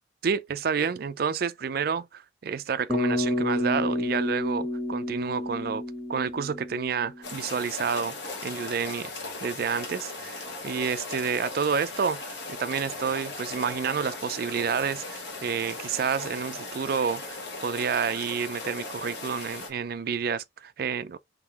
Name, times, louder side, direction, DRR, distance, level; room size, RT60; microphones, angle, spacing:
voice 1, 0.2-5.8 6.1-8.2 8.4-9.1 9.4-21.2, right 6 dB, 55° right, 0.4 m, -29 dB
Bass guitar, 2.9-7.3, left 1 dB, ahead, 1.3 m, -29 dB
sound 1, 7.2-19.7, left 3 dB, 80° left, 1.4 m, -38 dB
3.7 x 3.4 x 2.9 m
head